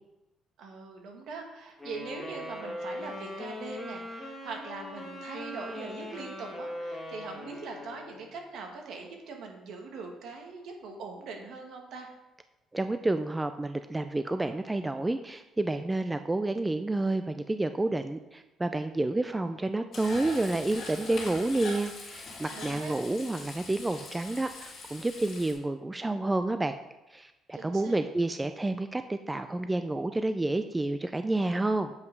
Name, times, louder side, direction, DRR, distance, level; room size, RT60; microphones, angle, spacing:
voice 1, 0.6-12.1 22.5-23.0 27.5-28.0, right 4 dB, 65° right, 2 dB, 1.8 m, -42 dB
sound 1, 1.8-8.3, left 1 dB, 10° left, 1.6 m, -40 dB
voice 2, 12.7-26.8 27.1-31.9, right 2 dB, 10° right, 9 dB, 0.3 m, -29 dB
Frying (food), 19.9-25.5, left 3 dB, 45° left, 2.8 m, -42 dB
8.1 x 5.5 x 5.3 m, 0.99 s
cardioid pair, 130°, 0 cm